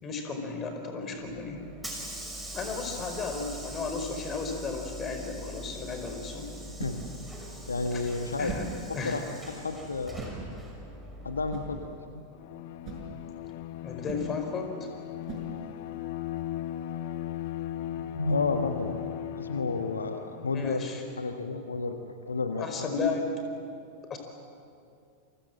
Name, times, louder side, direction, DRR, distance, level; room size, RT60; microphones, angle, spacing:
voice 1, 0.0-1.6 2.5-6.5 7.9-8.0 8.4-8.6 8.9-9.2 13.8-14.7 20.5-21.0 22.6-23.4 24.1-24.2, left 4 dB, 25° left, 5 dB, 4.8 m, -34 dB
Hiss / Sliding door, 1.2-12.0, right 1 dB, 5° right, 6.0 m, -43 dB
sound 1, 6.7-16.0, right 5 dB, 35° right, 6.5 m, -45 dB
voice 2, 6.8-7.2 7.7-8.5 8.9-10.3 11.2-12.2 18.0-19.0 19.4-20.9 21.2-22.9, left 3 dB, 75° left, 6 dB, 1.4 m, -32 dB
Bowed string instrument, 12.3-20.8, left 12 dB, 50° left, 1.0 m, -37 dB
29.5 x 24.5 x 7.7 m, 2.4 s
figure-of-eight pair, 90°, 0 cm